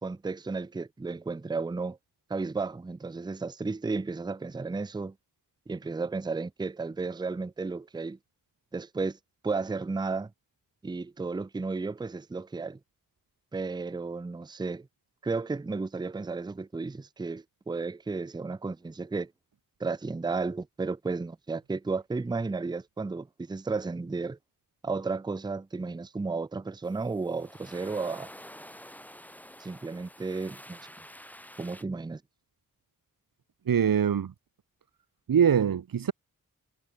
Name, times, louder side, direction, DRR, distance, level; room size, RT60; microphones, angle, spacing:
voice 1, 0.0-2.0 2.3-5.1 5.7-8.2 8.7-9.2 9.4-10.3 10.8-12.8 13.5-14.9 15.2-19.3 19.8-24.4 24.8-28.3 29.6-30.8 31.6-32.2, right 4 dB, 15° right, 0.5 m, -33 dB
sound 1, 26.8-31.8, equal, 5° left, 5.9 m, -48 dB
voice 2, 33.7-34.3 35.3-36.1, right 8 dB, 80° right, 1.2 m, -23 dB
wide cardioid pair, 80°, 34 cm